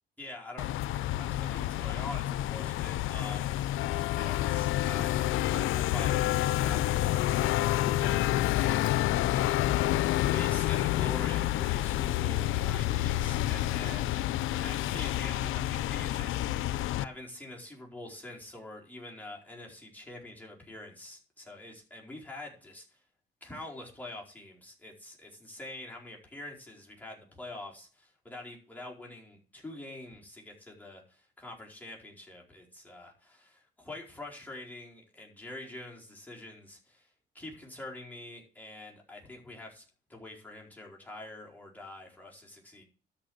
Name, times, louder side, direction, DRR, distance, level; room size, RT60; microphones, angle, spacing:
voice 1, 0.2-3.6 4.1-10.0 10.3-23.0 23.4-37.1 37.3-39.8 40.1-42.8, left 2 dB, 10° left, -2 dB, 4.5 m, -45 dB
sound 1, 0.6-17.0, left 14 dB, 85° left, 0.5 m, -29 dB
13.0 x 6.0 x 7.9 m, 0.39 s
cardioid pair, 90°, 20 cm